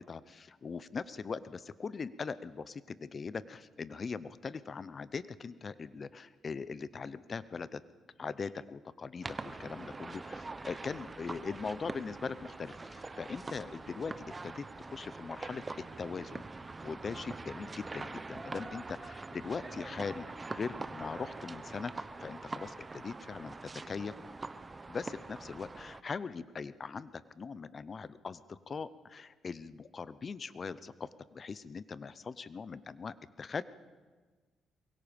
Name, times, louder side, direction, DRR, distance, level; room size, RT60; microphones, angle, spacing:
voice 1, 0.0-7.8 8.2-15.6 16.0-16.4 16.8-24.1 24.9-33.6, left 5 dB, 40° left, 16 dB, 0.8 m, -41 dB
sound 1, 9.2-26.0, right 3 dB, 25° right, 0.9 m, -44 dB
24.0 x 22.5 x 5.3 m, 1.4 s
cardioid pair, 90°, 0 cm